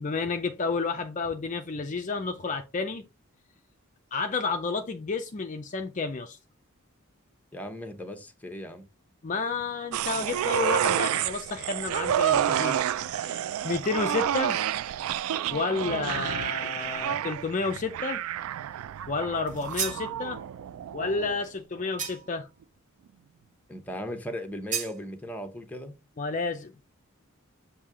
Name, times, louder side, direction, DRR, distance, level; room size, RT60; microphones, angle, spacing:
voice 1, 0.0-3.0 4.1-6.4 9.2-12.8 13.1-14.6 15.5-18.2 19.1-20.4 20.9-22.5 26.2-26.7, left 4 dB, 35° left, 0.4 m, -31 dB
voice 2, 7.5-8.8 23.7-25.9, equal, 5° left, 0.8 m, -37 dB
sound 1, 9.9-21.4 21.8-21.9, right 10 dB, 80° right, 0.3 m, -29 dB
sound 2, 19.5-20.1 22.0-22.4 24.7-25.0, right 7 dB, 35° right, 1.3 m, -33 dB
7.1 x 2.7 x 4.8 m
head